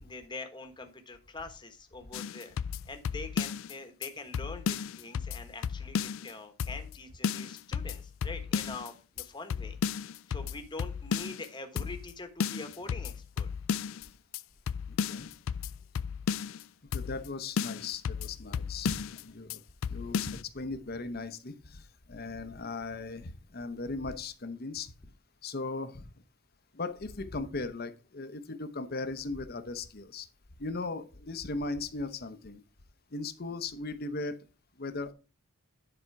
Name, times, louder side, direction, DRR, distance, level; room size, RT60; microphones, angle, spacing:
voice 1, 0.0-2.6 2.8-9.8 10.3-13.5, left 3 dB, 20° left, 1.2 m, -44 dB
sound 1, 2.1-3.7 4.0-4.1 4.3-6.3 6.6-7.0 7.2-8.9 9.2-9.3 9.5-11.5 11.8-12.1 12.4-14.1 14.3-14.4 14.7-16.6 16.9-17.3 17.6-19.2 19.5-19.6 19.8-20.4, left 7 dB, 65° left, 0.3 m, -34 dB
voice 2, 14.8-15.3 16.9-19.6 19.9-24.9 25.4-26.2 26.7-30.3 30.6-32.6 33.1-34.4 34.8-35.1, left 3 dB, 45° left, 0.8 m, -38 dB
10.0 x 4.3 x 4.6 m
head